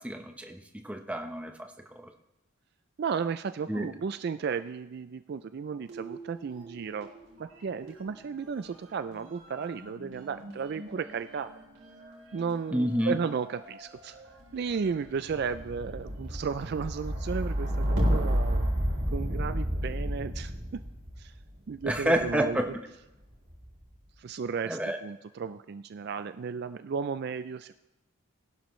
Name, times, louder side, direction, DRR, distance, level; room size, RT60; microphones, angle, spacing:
voice 1, 0.0-2.1 3.7-3.9 12.7-13.2 21.8-22.6 24.6-25.0, equal, 5° right, 4 dB, 0.9 m, -29 dB
voice 2, 3.0-7.1 7.4-11.5 12.3-14.2 14.5-18.7 19.1-20.8 21.2-21.3 21.7-22.6 24.2-27.7, right 6 dB, 50° right, 12 dB, 0.3 m, -34 dB
sound 1, 5.8-7.2 7.5-22.5 23.3-23.8, equal, 80° right, 3.7 m, -33 dB
20.5 x 11.5 x 3.1 m, 0.95 s
head